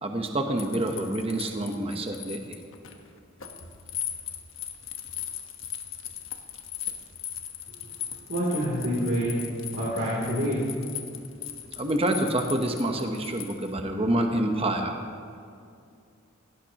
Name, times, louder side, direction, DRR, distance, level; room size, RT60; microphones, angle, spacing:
voice 1, 0.0-2.6 11.8-15.0, right 1 dB, 30° right, 4 dB, 0.9 m, -27 dB
sound 1, 0.6-13.7, left 10 dB, 70° left, 1.2 m, -38 dB
voice 2, 8.3-9.4 9.7-11.0, equal, 65° right, -7 dB, 3.1 m, -27 dB
18.0 x 16.5 x 3.0 m, 2.4 s
head